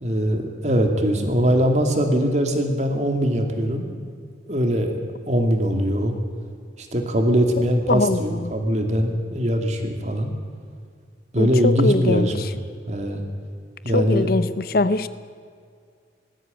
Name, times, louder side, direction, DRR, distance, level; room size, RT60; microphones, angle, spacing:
voice 1, 0.0-3.9 4.5-4.9 5.3-6.2 6.8-10.3 11.3-12.3 12.9-13.2 13.8-14.3, equal, 40° right, 4 dB, 2.4 m, -21 dB
voice 2, 7.9-8.5 11.4-12.5 13.9-15.1, left 2 dB, 55° left, 14 dB, 0.7 m, -22 dB
19.0 x 14.5 x 9.1 m, 2.1 s
head